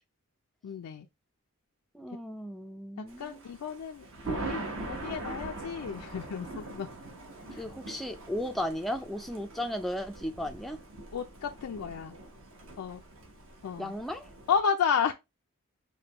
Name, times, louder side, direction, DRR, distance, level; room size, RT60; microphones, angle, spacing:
voice 1, 0.6-1.1 3.0-4.1 4.3-6.9 7.5-7.6 11.1-12.2 12.8-13.0 13.6-13.9 14.5-15.1, left 7 dB, 75° left, 0.4 m, -32 dB
voice 2, 1.9-3.4 4.2-4.4 7.5-10.8 13.8-14.3, left 1 dB, ahead, 0.3 m, -35 dB
Thunder, 3.1-14.6, right 2 dB, 60° right, 1.0 m, -42 dB
5.1 x 2.2 x 2.9 m
head